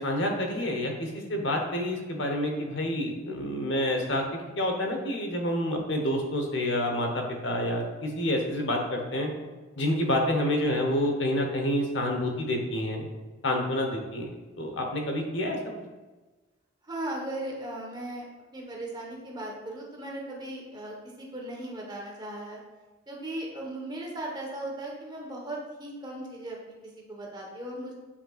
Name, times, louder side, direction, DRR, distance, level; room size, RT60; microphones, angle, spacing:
voice 1, 0.0-9.3 9.8-13.0 13.4-14.3 14.6-15.6, left 1 dB, 60° left, 2 dB, 1.0 m, -28 dB
voice 2, 16.8-18.2 18.5-22.6 23.1-26.8 27.1-27.9, right 1 dB, 20° right, -2 dB, 1.2 m, -37 dB
8.4 x 5.4 x 2.4 m, 1.2 s
head